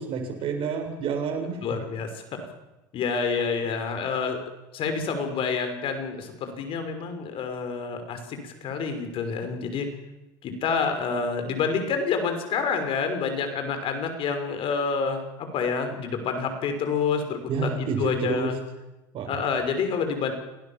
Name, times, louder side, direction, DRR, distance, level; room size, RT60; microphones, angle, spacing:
voice 1, 0.0-1.6 17.5-18.5 19.1-19.3, right 5 dB, 55° right, 4 dB, 7.4 m, -29 dB
voice 2, 1.6-2.2 2.9-4.4 4.7-9.9 10.4-18.6 19.3-20.3, left 5 dB, 55° left, 7 dB, 6.1 m, -28 dB
27.0 x 19.5 x 7.5 m, 1.0 s
hypercardioid pair, 80°, 11 cm